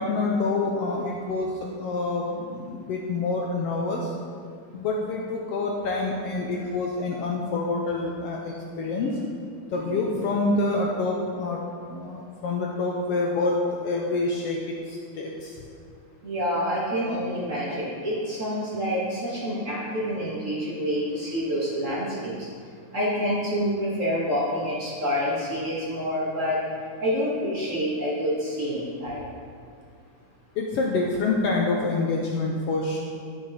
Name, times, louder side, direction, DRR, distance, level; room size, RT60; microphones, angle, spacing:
voice 1, 0.0-4.1 4.7-9.1 9.7-11.6 11.9-15.6 30.6-33.0, left 3 dB, 80° left, -1 dB, 1.4 m, -27 dB
voice 2, 9.7-10.1 16.2-22.3 22.9-26.6 27.0-29.2, equal, 35° right, -7 dB, 1.4 m, -27 dB
11.5 x 6.1 x 4.1 m, 2.2 s
omnidirectional pair, 3.5 m